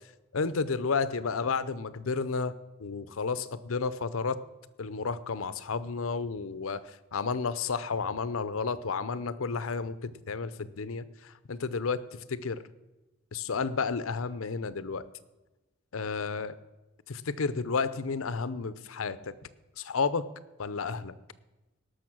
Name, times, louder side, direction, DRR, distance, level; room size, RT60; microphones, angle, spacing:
voice 1, 0.3-2.5 2.8-4.4 4.8-6.8 7.1-11.0 11.5-12.0 12.3-12.6 13.3-15.1 15.9-16.6 17.1-19.2 19.8-20.3 20.6-21.1, left 4 dB, 85° left, 15 dB, 0.7 m, -31 dB
18.0 x 6.5 x 6.1 m, 1.0 s
head